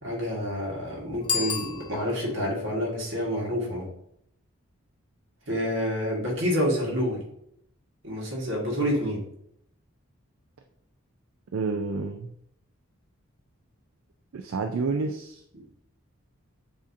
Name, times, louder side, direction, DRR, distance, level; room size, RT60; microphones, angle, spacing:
voice 1, 0.0-3.9 5.5-7.2 8.0-9.2, equal, 55° right, -2 dB, 1.5 m, -28 dB
Bicycle bell, 1.2-2.4, left 6 dB, 20° left, 0.5 m, -31 dB
voice 2, 11.5-12.3 14.3-15.4, right 4 dB, 75° right, 5 dB, 0.4 m, -29 dB
7.4 x 2.7 x 2.6 m, 0.72 s
head